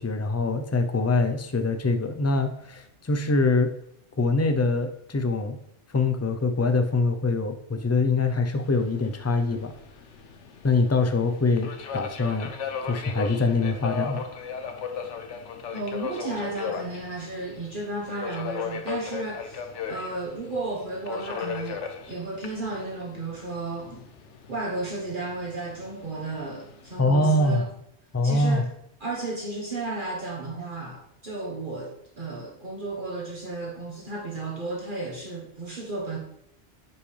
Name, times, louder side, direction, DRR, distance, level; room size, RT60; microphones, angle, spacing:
voice 1, 0.0-3.7 4.2-5.6 5.9-9.7 10.6-12.5 12.9-14.3 27.0-27.6 28.1-28.6, left 3 dB, 25° left, 7 dB, 0.4 m, -24 dB
Subway metro underground, 8.6-27.0, left 6 dB, 85° left, 1.2 m, -37 dB
voice 2, 15.7-24.0 24.5-27.6 28.2-28.7 29.0-36.2, right 2 dB, 45° right, -2 dB, 1.4 m, -33 dB
10.0 x 5.5 x 3.3 m, 0.75 s
omnidirectional pair, 1.2 m